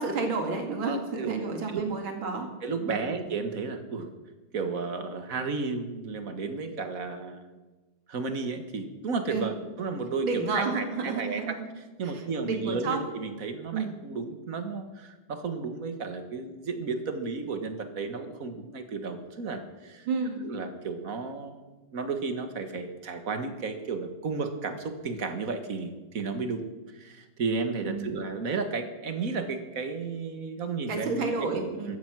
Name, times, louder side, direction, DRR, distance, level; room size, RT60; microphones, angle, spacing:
voice 1, 0.0-2.5 2.9-3.0 9.3-9.5 10.2-11.6 12.0-12.1 12.4-13.0 13.7-13.9 20.1-20.4 27.8-28.2 30.9-32.0, right 4 dB, 70° right, 4 dB, 2.9 m, -30 dB
voice 2, 0.8-1.3 1.7-1.9 2.6-4.1 4.5-7.6 8.1-11.6 12.0-20.1 20.4-21.6 21.9-31.3 31.5-32.0, right 4 dB, 45° right, 8 dB, 1.6 m, -33 dB
14.5 x 13.0 x 6.1 m, 1.2 s
omnidirectional pair, 2.3 m